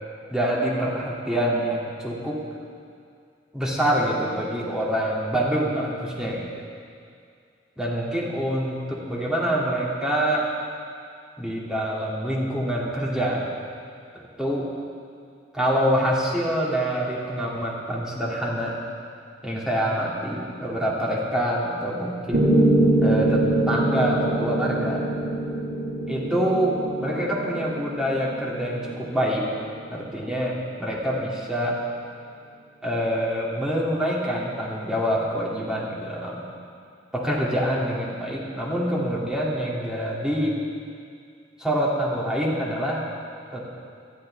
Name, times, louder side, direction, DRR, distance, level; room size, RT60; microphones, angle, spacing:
voice 1, 0.3-2.4 3.5-6.5 7.8-10.5 11.4-13.5 14.4-14.7 15.5-18.8 19.4-22.6 23.0-25.1 26.1-29.4 29.9-31.8 32.8-36.4 37.1-40.6 41.6-43.0 43.5-43.6, equal, 5° right, -5 dB, 2.2 m, -26 dB
Piano, 22.3-30.4, right 1 dB, 85° right, 1.8 m, -24 dB
19.0 x 12.0 x 3.3 m, 2.3 s
head